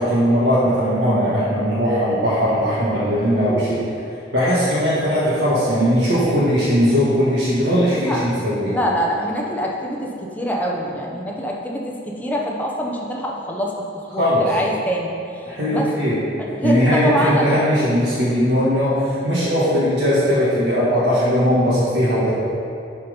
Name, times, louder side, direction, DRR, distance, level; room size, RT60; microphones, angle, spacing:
voice 1, 0.0-3.8 4.3-8.7 14.2-14.5 15.4-16.2 16.6-22.3, equal, 70° right, -11 dB, 1.7 m, -19 dB
voice 2, 7.9-8.3 8.6-15.4 15.7-15.9 16.4-17.6, equal, 10° left, -2 dB, 0.9 m, -25 dB
9.9 x 4.4 x 5.1 m, 2.6 s
head